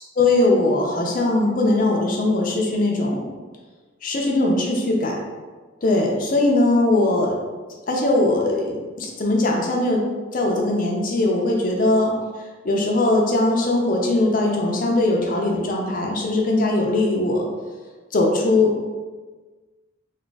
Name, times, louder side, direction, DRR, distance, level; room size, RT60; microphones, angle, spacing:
voice 1, 0.2-3.3 4.0-5.2 5.8-7.3 7.9-10.0 10.3-12.1 12.6-17.5 18.1-18.9, left 2 dB, 45° left, -1 dB, 0.5 m, -20 dB
2.7 x 2.4 x 3.9 m, 1.3 s
head